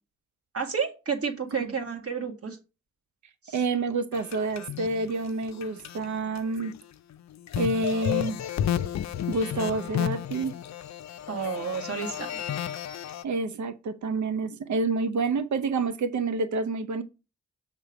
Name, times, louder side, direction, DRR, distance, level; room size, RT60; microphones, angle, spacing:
voice 1, 0.5-2.6 3.4-3.6 11.3-12.4, right 5 dB, 50° right, 2.0 m, -31 dB
voice 2, 3.5-6.7 7.6-8.4 9.3-10.5 13.2-17.0, right 3 dB, 65° right, 0.9 m, -28 dB
sound 1, 4.1-6.1 6.4-6.8 7.1-13.2, left 10 dB, 60° left, 0.5 m, -32 dB
6.5 x 3.6 x 5.0 m
supercardioid pair, 45°, 31 cm